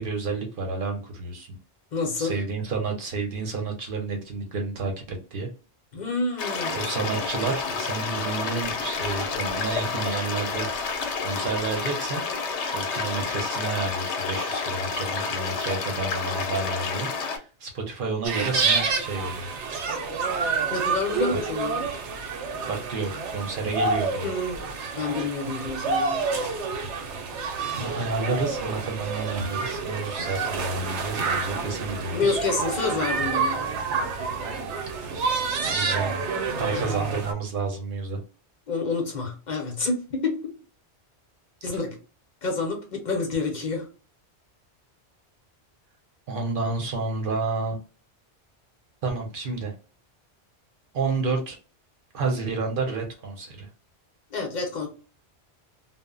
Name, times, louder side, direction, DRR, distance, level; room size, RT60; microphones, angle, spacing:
voice 1, 0.0-1.5 2.2-5.5 6.7-10.7 11.2-12.2 12.6-19.5 22.6-24.3 27.5-32.4 35.6-36.3 36.6-38.2 46.3-47.8 49.0-49.7 50.9-51.6 52.1-53.7, right 3 dB, 55° right, 2 dB, 0.7 m, -30 dB
voice 2, 1.9-2.4 5.9-6.8 20.7-21.8 24.2-24.6 25.0-26.2 32.1-33.6 36.7-36.8 38.7-40.5 41.6-42.0 42.4-43.9 54.3-54.9, left 3 dB, 50° left, 2 dB, 0.7 m, -28 dB
sound 1, 6.4-17.4, left 4 dB, 80° left, 0.9 m, -29 dB
sound 2, 18.2-37.3, right 4 dB, 85° right, 0.9 m, -28 dB
2.0 x 2.0 x 3.6 m, 0.36 s
omnidirectional pair, 1.2 m